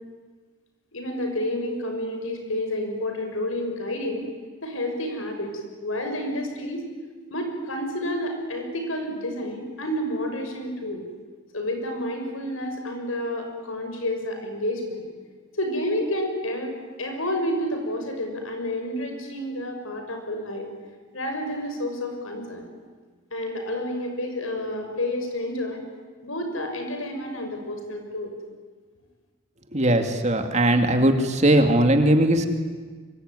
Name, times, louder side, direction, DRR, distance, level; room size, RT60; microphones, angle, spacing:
voice 1, 0.9-4.3 4.6-5.5 5.8-6.9 7.3-11.0 11.5-15.1 15.5-16.7 17.0-20.7 21.1-22.6 23.3-25.8 26.2-28.3, left 1 dB, 85° left, 4 dB, 6.6 m, -29 dB
voice 2, 29.7-32.5, right 1 dB, 35° right, 6 dB, 2.5 m, -19 dB
24.5 x 24.5 x 9.9 m, 1.5 s
head